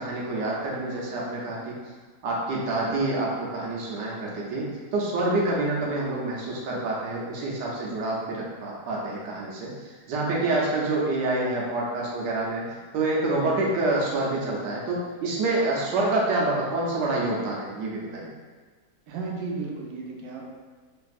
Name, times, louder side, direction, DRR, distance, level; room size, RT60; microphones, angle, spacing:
voice 1, 0.0-1.8 2.2-18.3, right 2 dB, 90° right, -4 dB, 1.3 m, -27 dB
voice 2, 19.1-20.5, right 4 dB, 70° right, -1 dB, 0.9 m, -34 dB
3.2 x 2.6 x 2.3 m, 1.4 s
omnidirectional pair, 1.8 m